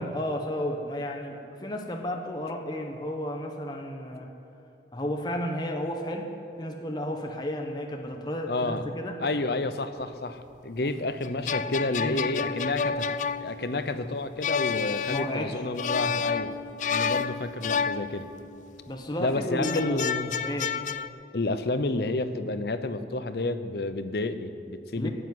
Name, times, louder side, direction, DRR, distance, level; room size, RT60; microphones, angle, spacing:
voice 1, 0.0-4.3 4.9-6.3 6.6-9.2 10.8-10.9 12.0-12.2 15.1-15.6 18.9-20.1 20.4-20.8 25.0-25.1, equal, 25° left, 2 dB, 1.0 m, -32 dB
voice 2, 8.5-8.9 9.2-13.1 13.4-16.5 16.9-18.3 19.2-20.3 21.3-25.1, left 2 dB, 65° left, 10 dB, 0.7 m, -30 dB
sound 1, 11.2-18.7 19.6-21.1, left 6 dB, 45° left, 0.3 m, -30 dB
14.0 x 8.3 x 9.3 m, 2.7 s
head